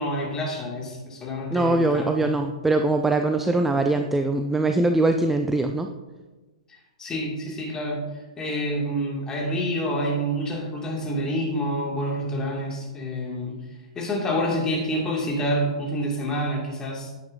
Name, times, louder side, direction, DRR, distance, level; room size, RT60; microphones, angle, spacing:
voice 1, 0.0-2.3 7.0-8.0 8.4-13.5 14.0-17.1, equal, 15° left, -2 dB, 2.1 m, -27 dB
voice 2, 1.5-5.9, right 2 dB, 5° right, 6 dB, 0.4 m, -22 dB
9.7 x 8.6 x 2.6 m, 1.2 s
hypercardioid pair, 120°, 4 cm